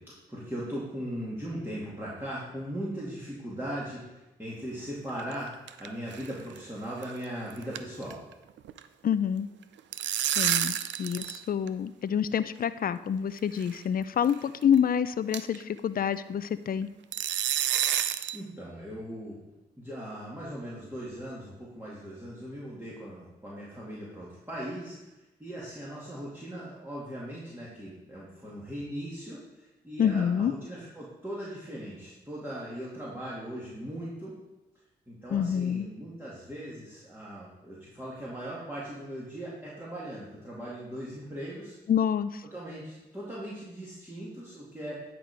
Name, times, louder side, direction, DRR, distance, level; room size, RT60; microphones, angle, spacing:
voice 1, 0.1-5.5 5.8-8.2 18.3-19.4 19.8-25.1 25.4-34.3 35.1-41.8 42.4-45.1, equal, 10° right, -7 dB, 2.5 m, -39 dB
sound 1, 5.1-5.9 6.1-6.3 6.6-6.7 7.0-7.2 7.5-8.8 9.6-11.4 11.7-11.8 12.6-12.7 13.6-13.8 14.2-14.3 14.7-14.8 15.3-15.6 17.1-18.4, right 11 dB, 80° right, 0.5 m, -29 dB
voice 2, 9.0-9.5 10.4-16.9 30.0-30.5 35.3-35.9 41.9-42.4, left 8 dB, 50° left, 14 dB, 0.5 m, -27 dB
10.0 x 4.6 x 5.1 m, 1.0 s
supercardioid pair, 55°, 19 cm